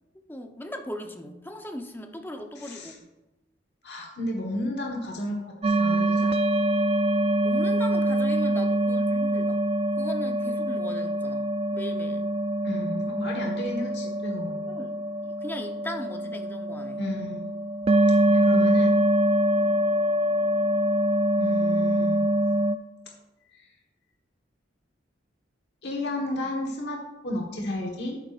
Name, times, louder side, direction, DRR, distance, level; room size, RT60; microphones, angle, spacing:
voice 1, 0.3-3.0 7.4-9.6 10.0-12.3 14.7-17.0 18.0-18.4 19.5-19.8, left 1 dB, 10° left, 4 dB, 0.8 m, -39 dB
voice 2, 2.6-2.9 3.8-6.3 12.6-14.7 17.0-17.4 18.3-19.0 21.4-22.3 25.8-27.0 27.2-28.2, left 1 dB, 65° left, -1 dB, 1.4 m, -32 dB
sound 1, 5.6-22.8, right 1 dB, 35° right, 0.4 m, -24 dB
11.5 x 8.7 x 2.5 m, 1.0 s
head